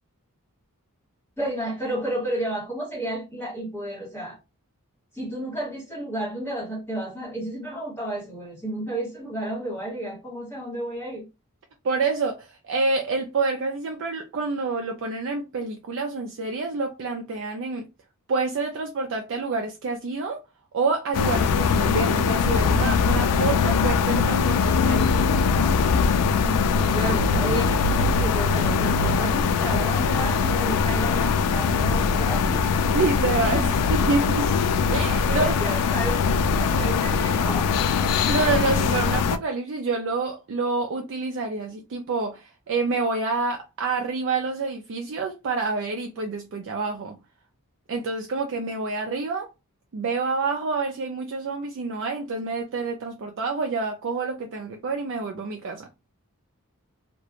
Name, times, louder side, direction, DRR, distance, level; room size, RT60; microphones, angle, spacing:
voice 1, 1.4-4.4 5.1-11.3 25.9-32.8 33.5-33.8 35.2-37.7, right 1 dB, 10° left, 1.3 m, -32 dB
voice 2, 11.8-17.9 18.3-20.4 20.7-25.2 32.9-34.5 34.9-35.6 38.3-47.2 47.9-49.5 49.9-55.9, right 3 dB, 60° right, 0.4 m, -27 dB
sound 1, 21.1-39.4, left 5 dB, 90° left, 0.3 m, -22 dB
2.4 x 2.2 x 2.8 m
head